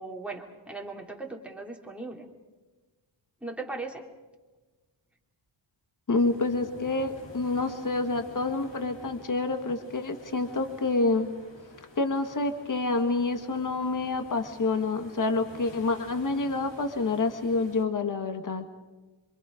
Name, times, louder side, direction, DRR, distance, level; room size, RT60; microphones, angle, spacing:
voice 1, 0.0-2.3 3.4-4.1, right 3 dB, 5° right, 0 dB, 2.5 m, -38 dB
sound 1, 6.1-17.8, left 1 dB, 65° left, 3.9 m, -50 dB
voice 2, 6.1-11.3 12.0-18.7, left 3 dB, 40° left, 6 dB, 1.7 m, -28 dB
27.0 x 25.0 x 5.1 m, 1.2 s
wide cardioid pair, 170°, 46 cm